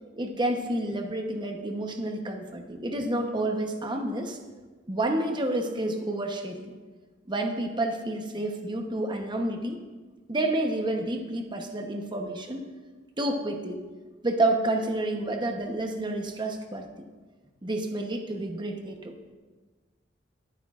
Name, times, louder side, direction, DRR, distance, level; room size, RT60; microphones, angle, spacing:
voice 1, 0.2-4.4 4.9-6.7 7.3-9.8 10.3-12.7 13.2-13.8 14.2-16.9 17.6-19.1, right 1 dB, 25° right, 4 dB, 0.9 m, -29 dB
20.5 x 8.9 x 2.5 m, 1.3 s
head